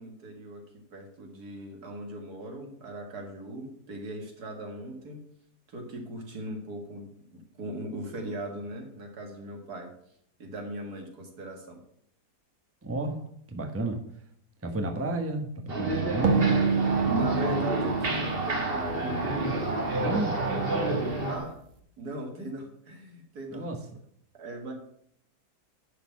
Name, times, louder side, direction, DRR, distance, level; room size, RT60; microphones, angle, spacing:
voice 1, 0.0-5.2 5.7-9.9 10.4-11.8 17.1-20.4 21.3-21.6 22.0-23.7 24.3-24.7, right 1 dB, 70° right, 2 dB, 2.4 m, -39 dB
voice 2, 12.8-13.2 13.5-14.0 14.6-16.6 20.0-20.4 23.5-23.8, right 2 dB, 10° right, 3 dB, 1.0 m, -32 dB
sound 1, 15.7-21.4, right 2 dB, 35° right, 1.7 m, -29 dB
sound 2, 16.2-19.7, right 5 dB, 55° right, 1.5 m, -28 dB
11.0 x 4.2 x 7.2 m, 0.69 s
omnidirectional pair, 1.7 m